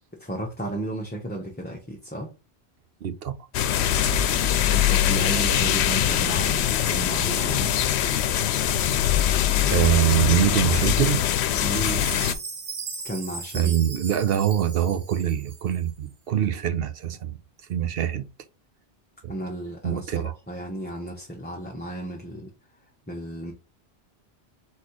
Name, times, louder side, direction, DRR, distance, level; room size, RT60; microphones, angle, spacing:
voice 1, 0.2-2.3 4.6-7.7 11.6-12.0 13.0-13.8 19.3-22.5 23.1-23.5, right 1 dB, 10° left, 0.9 m, -33 dB
voice 2, 3.0-3.3 9.7-11.2 13.5-17.4 17.7-18.3 19.2-19.3 19.8-20.3, right 10 dB, 65° right, 0.9 m, -24 dB
sound 1, 3.5-12.3, left 10 dB, 80° left, 0.8 m, -22 dB
Chime, 11.7-16.0, right 4 dB, 80° right, 1.4 m, -37 dB
4.2 x 4.1 x 3.0 m
omnidirectional pair, 1.1 m